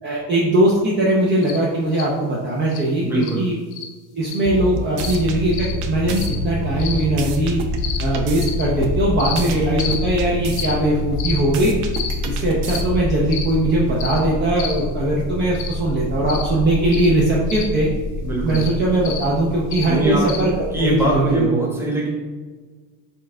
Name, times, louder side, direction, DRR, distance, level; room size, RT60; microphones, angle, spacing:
voice 1, 0.0-3.5 4.1-7.6 8.0-11.8 12.2-17.9 18.4-20.5 20.8-21.5, right 1 dB, 25° right, -5 dB, 0.7 m, -20 dB
sound 1, 1.4-1.6 1.9-2.1 2.7-2.8 3.2-3.3 3.7-3.8 4.3-4.5 5.0-5.2 5.5-5.7 6.2-6.4 6.8-7.0 7.8-8.0 8.4-8.6 9.2-9.4 9.8-10.0 10.5-10.7 11.2-11.4 11.9-12.1 12.6-12.8 13.3-13.5 14.0-14.2 14.6-14.8 15.5-15.7 16.3-16.5 16.9-17.1 17.5-17.6 18.5-18.7 19.0-19.2 19.7-19.8 20.3-20.4, left 7 dB, 65° left, 0.8 m, -30 dB
voice 2, 3.0-3.5 18.2-18.6 19.9-20.3 20.7-22.1, right 2 dB, 5° right, -4 dB, 1.2 m, -21 dB
sound 2, 4.4-5.4 5.8-8.5 8.8-10.6 11.0-13.1, left 1 dB, 70° right, 0.7 m, -28 dB
sound 3, 5.0-21.2, left 1 dB, 10° left, 0.4 m, -28 dB
4.5 x 2.5 x 4.3 m, 1.4 s
cardioid pair, 120°, 40 cm